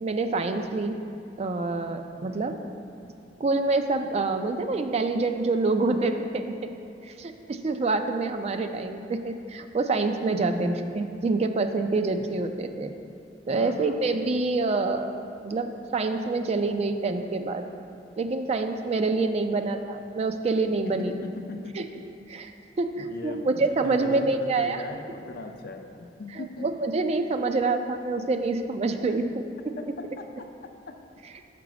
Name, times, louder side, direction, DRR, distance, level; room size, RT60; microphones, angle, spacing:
voice 1, 0.0-1.0 1.4-2.5 3.4-6.7 7.0-12.9 13.5-15.1 15.4-17.7 18.2-21.1 21.8-21.9 22.3-22.5 22.8-24.8 26.4-29.3, right 3 dB, 35° right, 7 dB, 0.4 m, -26 dB
voice 2, 2.3-2.7 10.4-10.9 13.5-14.3 20.9-22.0 23.0-26.7 29.1-29.2 29.7-31.0, left 2 dB, 60° left, 5 dB, 0.5 m, -39 dB
6.0 x 4.8 x 6.0 m, 2.7 s
head